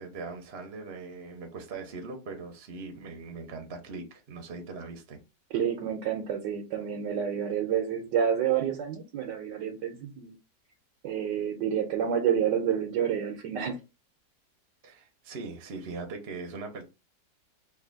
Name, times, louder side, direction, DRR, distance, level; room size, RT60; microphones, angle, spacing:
voice 1, 0.0-5.2 14.8-16.8, right 3 dB, 45° right, 0.9 m, -40 dB
voice 2, 5.5-10.3 11.0-13.8, right 8 dB, 80° right, 1.4 m, -29 dB
3.3 x 2.7 x 3.9 m
omnidirectional pair, 1.9 m